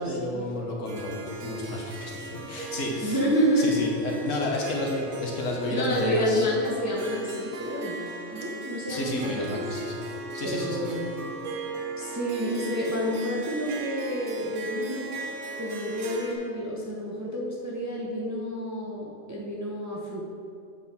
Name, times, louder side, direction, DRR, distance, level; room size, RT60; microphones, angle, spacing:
voice 1, 0.0-3.2 3.6-6.4 8.9-10.0 10.3-10.9, left 2 dB, 65° left, -2 dB, 1.5 m, -31 dB
Harp, 0.9-16.3, right 2 dB, 90° right, 1.3 m, -38 dB
voice 2, 3.0-3.9 5.7-8.0 8.3-9.6 10.4-11.1 12.0-15.2 15.6-20.2, equal, 15° right, -4 dB, 0.8 m, -29 dB
8.3 x 5.7 x 4.3 m, 2.5 s
omnidirectional pair, 1.4 m